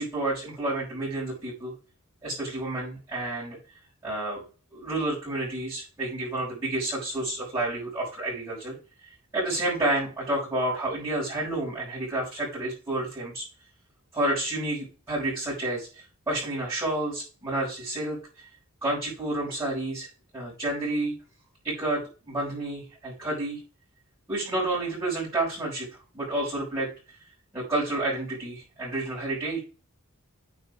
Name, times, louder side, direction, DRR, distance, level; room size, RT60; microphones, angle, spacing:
voice 1, 0.0-1.7 2.2-3.6 4.0-4.4 4.7-8.7 9.3-13.4 14.1-18.5 18.8-20.1 20.3-21.2 21.6-23.6 24.3-25.9 26.1-26.9 27.5-29.6, right 2 dB, 15° right, -11 dB, 6.0 m, -30 dB
9.3 x 5.5 x 4.8 m, 0.34 s
head